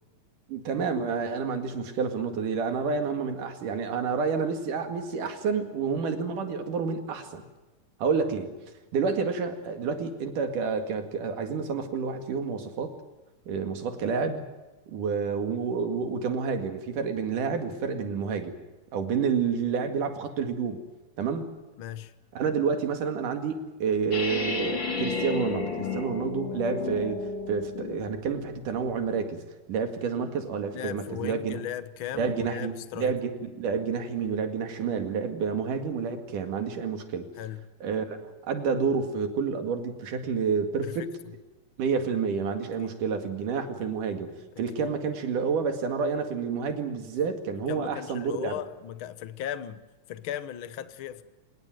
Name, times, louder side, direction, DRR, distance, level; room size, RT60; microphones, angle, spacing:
voice 1, 0.5-7.4 8.0-8.5 8.9-12.9 13.5-14.5 14.9-18.6 18.9-20.8 21.2-21.5 22.4-29.4 29.7-31.6 32.2-37.3 37.8-41.1 41.8-44.3 44.6-48.5, right 5 dB, 70° right, 3.7 m, -29 dB
voice 2, 21.8-22.1 30.7-33.2 37.4-37.6 40.8-41.1 42.8-42.9 44.8-44.9 47.7-49.8 50.1-51.2, left 11 dB, 65° left, 1.3 m, -37 dB
sound 1, 24.1-28.1, left 4 dB, 35° left, 3.0 m, -32 dB
26.0 x 20.5 x 7.9 m
omnidirectional pair, 3.8 m